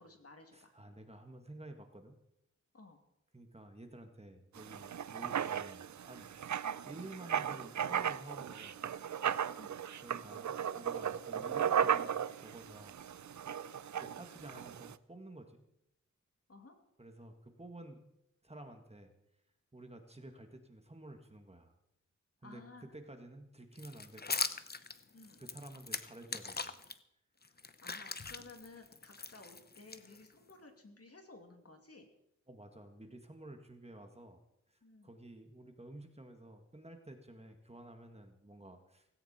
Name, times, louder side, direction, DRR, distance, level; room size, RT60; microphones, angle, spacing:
voice 1, 0.0-0.7 2.7-3.0 6.6-6.8 9.6-9.8 16.5-16.8 22.4-22.8 25.1-25.4 27.8-32.1 34.8-35.1, left 3 dB, 55° left, 4 dB, 2.7 m, -55 dB
voice 2, 0.5-2.2 3.3-8.8 10.0-13.0 14.0-15.7 17.0-18.1 18.4-19.1 19.7-21.7 22.4-24.4 25.4-26.7 28.4-28.5 32.5-34.4 34.7-39.1, right 1 dB, 20° right, 5 dB, 1.8 m, -52 dB
Writing, 4.6-14.9, right 8 dB, 75° right, 0.5 m, -36 dB
sound 1, 23.8-26.9 27.4-30.5, left 4 dB, 35° left, 0.8 m, -41 dB
17.5 x 16.5 x 4.4 m, 0.81 s
wide cardioid pair, 100°, 29 cm